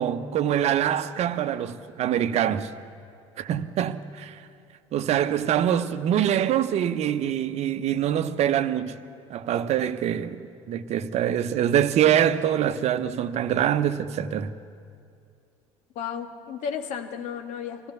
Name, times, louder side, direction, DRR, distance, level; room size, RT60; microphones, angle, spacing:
voice 1, 0.0-2.7 3.4-4.4 4.9-9.0 9.3-14.5, right 10 dB, 45° right, 1.0 m, -24 dB
voice 2, 16.0-17.9, left 7 dB, 50° left, 2.1 m, -33 dB
24.5 x 16.5 x 7.0 m
figure-of-eight pair, 65°, 16 cm